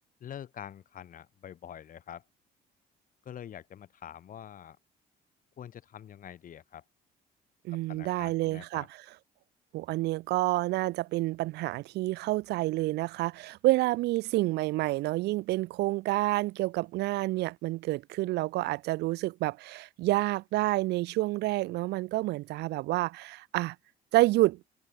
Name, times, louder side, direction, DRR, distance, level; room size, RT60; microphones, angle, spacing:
voice 1, 0.2-2.2 3.2-4.8 5.6-6.8 7.7-8.9, left 10 dB, 55° left, 8.0 m, -45 dB
voice 2, 7.6-8.8 9.7-23.7 24.1-24.6, right 19 dB, 80° right, 0.8 m, -28 dB
cardioid pair, 110°, 17 cm